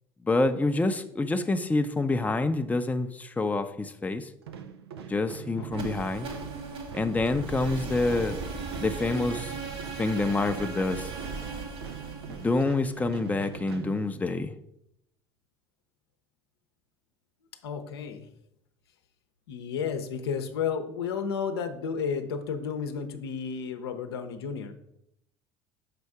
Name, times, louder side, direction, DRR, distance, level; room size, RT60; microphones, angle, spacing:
voice 1, 0.2-4.3 5.1-6.3 6.9-8.4 8.8-9.6 10.0-11.1 12.3-14.5, left 2 dB, 10° left, 8 dB, 0.6 m, -27 dB
sound 1, 4.4-14.6, right 8 dB, 85° right, 0.5 m, -43 dB
voice 2, 5.5-5.9 17.6-18.3 19.5-24.7, left 6 dB, 80° left, 6 dB, 0.7 m, -32 dB
sound 2, 5.7-13.6, right 4 dB, 45° right, 1.6 m, -38 dB
6.7 x 4.2 x 4.7 m, 0.77 s
hypercardioid pair, 65°, 13 cm